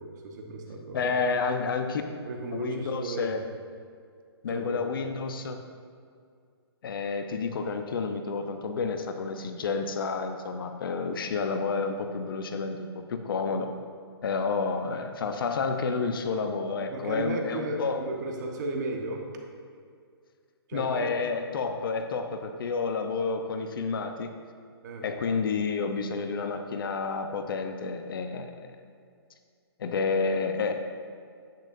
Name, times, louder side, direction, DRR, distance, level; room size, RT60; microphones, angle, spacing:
voice 1, 0.0-1.1 2.3-3.3 4.5-4.9 16.9-19.2 20.7-21.2 24.8-25.2, right 2 dB, 45° right, 2 dB, 1.3 m, -35 dB
voice 2, 0.9-2.0 2.5-3.4 4.4-5.6 6.8-13.7 14.2-18.0 20.7-24.3 25.0-28.7 29.8-30.7, left 4 dB, 60° left, 6 dB, 0.8 m, -30 dB
10.5 x 8.4 x 2.6 m, 2.2 s
hypercardioid pair, 140°, 13 cm